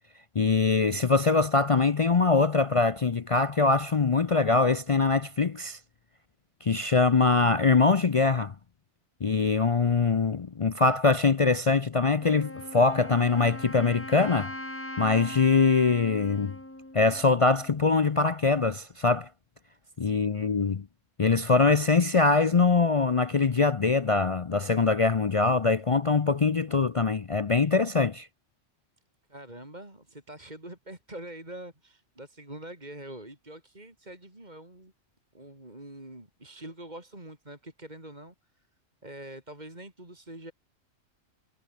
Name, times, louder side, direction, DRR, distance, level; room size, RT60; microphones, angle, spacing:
voice 1, 0.3-5.8 6.6-8.5 9.2-14.5 15.0-16.6 16.9-19.3 20.0-20.9 21.2-28.3, left 4 dB, 40° left, 0.4 m, -23 dB
Wind instrument woodwind instrument, 12.2-17.9, left 1 dB, 10° left, 1.9 m, -40 dB
voice 2, 19.8-20.5 29.3-34.9 35.3-38.7 39.0-40.5, right 1 dB, 35° right, 4.8 m, -45 dB
omnidirectional pair, 1.3 m